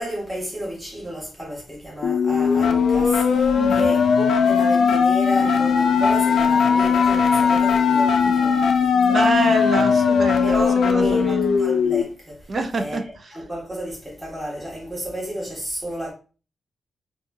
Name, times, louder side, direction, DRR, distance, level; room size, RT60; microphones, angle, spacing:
voice 1, 0.0-9.3 10.4-16.1, equal, 5° right, 1.3 m, -32 dB
sound 1, 2.0-12.0, left 6 dB, 80° left, 0.4 m, -18 dB
voice 2, 3.6-4.0 8.3-8.4 8.9-11.6 12.5-13.3, right 3 dB, 40° right, 0.5 m, -27 dB
4.0 x 2.4 x 2.7 m
wide cardioid pair, 135°, 0 cm